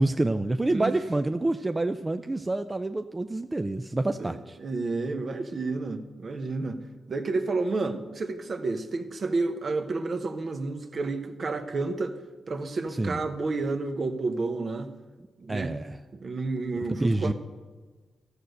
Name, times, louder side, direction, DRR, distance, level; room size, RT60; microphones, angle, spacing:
voice 1, 0.0-4.6 13.0-13.2 15.5-16.0 16.8-17.3, right 2 dB, 25° right, 9 dB, 0.4 m, -27 dB
voice 2, 4.2-6.8 7.1-12.2 12.5-14.9 15.4-15.8 16.1-17.3, right 3 dB, 50° right, 8 dB, 1.1 m, -30 dB
13.5 x 6.4 x 6.6 m, 1.4 s
cardioid pair, 70°, 0 cm